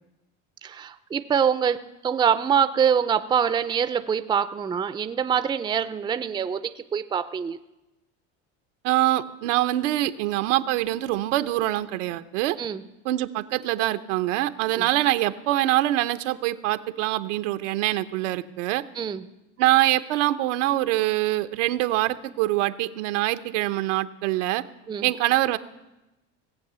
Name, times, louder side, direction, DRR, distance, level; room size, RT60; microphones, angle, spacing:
voice 1, 0.6-7.6 12.6-12.8 14.7-14.9 19.0-19.2 24.9-25.1, right 7 dB, 15° right, 11 dB, 0.4 m, -25 dB
voice 2, 8.8-12.6 13.0-18.8 19.6-24.6 25.0-25.6, right 15 dB, 90° right, 10 dB, 0.8 m, -24 dB
18.0 x 8.0 x 6.8 m, 1.0 s
supercardioid pair, 120°, 36 cm